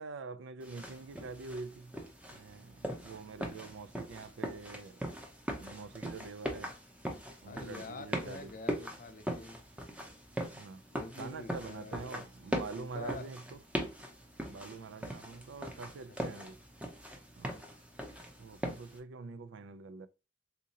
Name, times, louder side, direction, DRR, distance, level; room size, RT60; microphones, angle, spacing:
voice 1, 0.0-2.0 2.3-5.0 5.6-6.8 7.4-8.5 10.5-10.8 11.2-13.6 14.4-16.6 17.4-17.6 18.4-20.1, right 4 dB, 85° right, 0.4 m, -45 dB
sound 1, 0.6-19.0, equal, 5° right, 0.6 m, -41 dB
voice 2, 7.5-9.6 10.9-12.3 12.7-13.3 16.3-16.5, left 3 dB, 45° left, 0.5 m, -46 dB
3.7 x 2.8 x 2.7 m
head